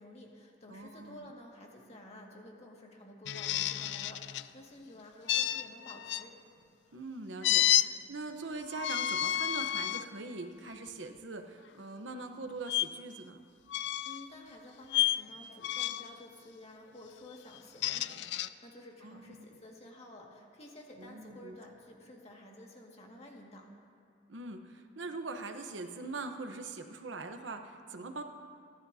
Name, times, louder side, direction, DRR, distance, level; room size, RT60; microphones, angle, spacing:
voice 1, 0.0-6.4 14.1-23.7, left 1 dB, 35° left, -1 dB, 2.0 m, -52 dB
voice 2, 0.7-1.3 6.9-13.4 19.0-19.5 21.0-21.6 24.3-28.2, right 3 dB, 75° right, 6 dB, 0.9 m, -42 dB
sound 1, 3.2-4.5 5.3-6.2 7.4-7.9 8.7-10.1 10.7-10.9 12.7-12.8 13.7-14.3 14.9-15.2 15.6-16.1 17.5-18.5, left 12 dB, 65° left, 0.4 m, -30 dB
29.0 x 12.0 x 2.8 m, 2.5 s
head